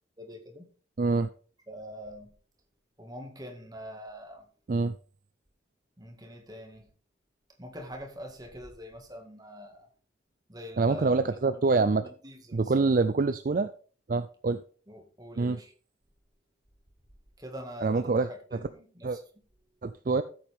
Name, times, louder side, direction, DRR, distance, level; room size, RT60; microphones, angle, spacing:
voice 1, 0.2-0.7 1.7-2.3 3.0-4.5 6.0-6.9 7.6-9.9 10.5-12.7 14.9-15.7 17.4-19.2, equal, 20° right, 3 dB, 1.9 m, -44 dB
voice 2, 1.0-1.3 4.7-4.9 10.8-12.1 12.5-13.7 14.1-14.6 15.4-15.6 17.8-18.3 19.0-19.2 19.8-20.2, right 3 dB, 45° right, 12 dB, 0.4 m, -25 dB
13.0 x 7.7 x 3.6 m, 0.41 s
head